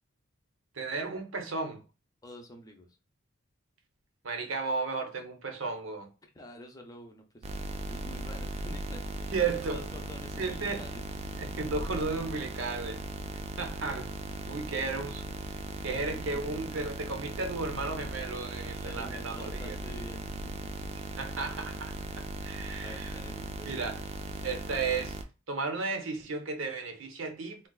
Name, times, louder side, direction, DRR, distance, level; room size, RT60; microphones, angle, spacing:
voice 1, 0.7-1.8 4.2-6.1 9.3-9.8 10.4-10.8 11.3-13.0 13.6-14.1 14.4-15.2 15.8-19.8 21.2-23.2 23.6-24.0 24.4-25.2 25.5-27.7, right 4 dB, 75° right, 0.8 m, -34 dB
voice 2, 2.2-2.9 6.3-7.5 7.9-11.0 14.6-14.7 18.5-20.9 22.8-24.1, left 1 dB, 15° left, 0.5 m, -48 dB
sound 1, 7.4-25.2, right 2 dB, 30° right, 0.3 m, -38 dB
3.8 x 2.3 x 2.3 m
head